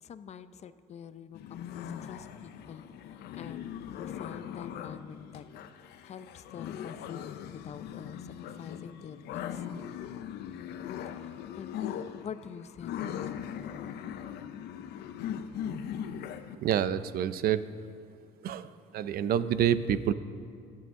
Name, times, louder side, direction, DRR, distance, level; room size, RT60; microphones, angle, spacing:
voice 1, 0.0-2.8 3.1-5.5 5.8-9.7 11.0-13.1, left 7 dB, 40° left, 13 dB, 0.6 m, -46 dB
sound 1, 1.3-16.6, left 9 dB, 75° left, 0.7 m, -40 dB
voice 2, 16.6-17.7 18.4-20.1, right 9 dB, 65° right, 14 dB, 0.6 m, -28 dB
24.0 x 8.6 x 3.7 m, 2.3 s
cardioid pair, 110°, 17 cm